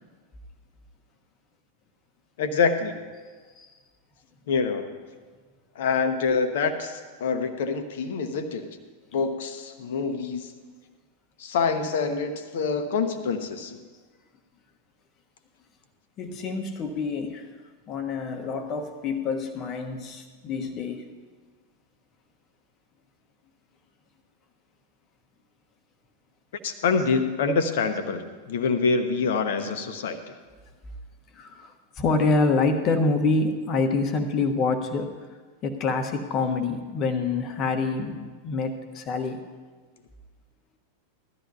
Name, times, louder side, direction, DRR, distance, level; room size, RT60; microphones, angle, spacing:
voice 1, 2.4-3.0 4.5-4.9 5.7-8.7 9.1-10.5 11.4-13.8 26.6-30.2, left 5 dB, 55° left, 8 dB, 1.0 m, -26 dB
voice 2, 16.2-17.5 17.9-21.1 31.3-35.1 35.6-39.4, left 3 dB, 35° left, 5 dB, 1.3 m, -26 dB
17.5 x 12.5 x 2.8 m, 1.5 s
figure-of-eight pair, 90°, 0 cm